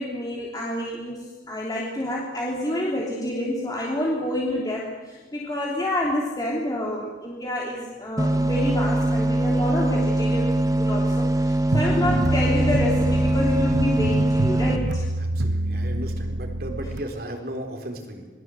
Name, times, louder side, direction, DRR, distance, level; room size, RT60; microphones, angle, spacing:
voice 1, 0.0-15.1, left 1 dB, 20° left, -3 dB, 3.2 m, -28 dB
sound 1, 8.2-14.8, right 1 dB, 20° right, 1.3 m, -22 dB
sound 2, 11.7-17.0, right 2 dB, 75° right, 1.1 m, -27 dB
voice 2, 15.2-18.3, right 1 dB, 55° right, 3 dB, 4.0 m, -35 dB
27.5 x 21.0 x 7.9 m, 1.3 s
head